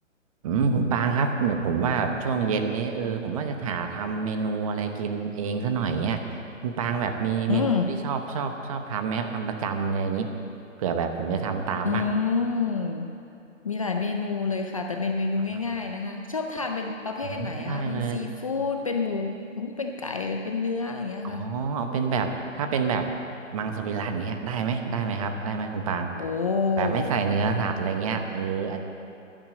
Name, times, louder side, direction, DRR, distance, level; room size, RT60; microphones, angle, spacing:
voice 1, 0.4-7.7 8.0-10.3 10.8-12.1 17.2-18.2 21.2-23.1 23.5-26.1 26.8-28.8, right 5 dB, 25° right, 6 dB, 0.8 m, -27 dB
voice 2, 7.5-7.9 11.8-13.1 13.6-21.5 26.2-27.1, left 4 dB, 30° left, 3 dB, 0.4 m, -28 dB
11.0 x 10.5 x 7.6 m, 2.6 s
hypercardioid pair, 145°, 39 cm